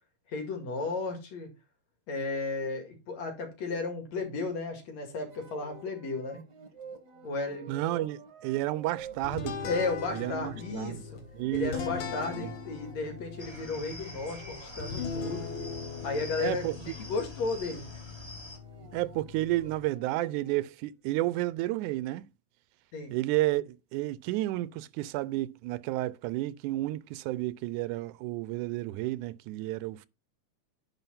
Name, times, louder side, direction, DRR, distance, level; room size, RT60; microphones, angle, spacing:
voice 1, 0.3-1.5 2.1-6.4 7.2-7.7 9.6-11.1 11.5-15.5 16.0-17.9 22.9-23.1, left 3 dB, 60° left, 3.3 m, -34 dB
sound 1, 5.3-17.2 18.4-20.6, right 4 dB, 50° right, 1.4 m, -51 dB
voice 2, 7.7-9.6 10.1-11.0 11.4-11.7 12.3-12.5 16.4-16.8 18.9-22.3 23.1-30.1, right 17 dB, 85° right, 2.0 m, -31 dB
sound 2, 9.2-19.9, left 5 dB, 80° left, 2.8 m, -40 dB
sound 3, 13.4-18.6, equal, 10° left, 1.3 m, -46 dB
9.9 x 3.9 x 5.6 m
omnidirectional pair, 3.5 m